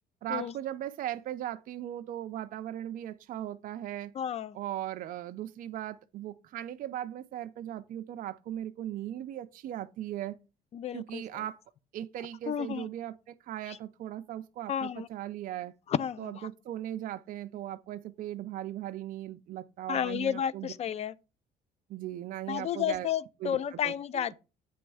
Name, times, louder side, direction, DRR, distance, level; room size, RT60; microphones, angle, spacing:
voice 1, 0.2-4.1 4.5-10.4 10.9-11.6 11.9-15.7 16.2-20.7 21.9-23.1 23.4-24.3, right 12 dB, 55° right, 0.4 m, -38 dB
voice 2, 4.2-4.6 10.7-11.2 12.5-12.9 13.7-13.8 14.7-15.1 15.9-16.5 19.9-21.1 22.5-24.4, left 9 dB, 40° left, 0.4 m, -32 dB
8.6 x 3.0 x 4.7 m
cardioid pair, 110°, 17 cm